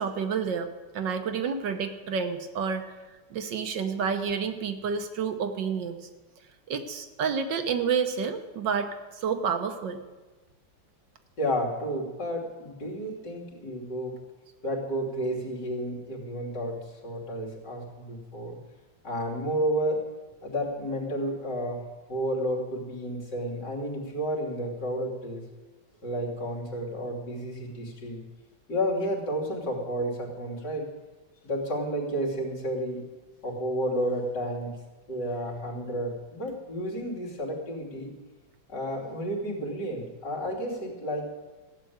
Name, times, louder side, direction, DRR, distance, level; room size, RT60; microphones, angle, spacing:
voice 1, 0.0-2.8 3.3-6.0 6.7-10.0, right 6 dB, 70° right, 7 dB, 1.6 m, -29 dB
voice 2, 11.4-14.2 14.6-18.6 19.0-20.0 20.4-25.4 26.0-28.3 28.7-30.9 31.4-33.0 33.4-34.7 35.1-38.1 38.7-41.3, equal, 60° left, -3 dB, 3.5 m, -31 dB
15.0 x 7.7 x 9.3 m, 1.2 s
omnidirectional pair, 2.1 m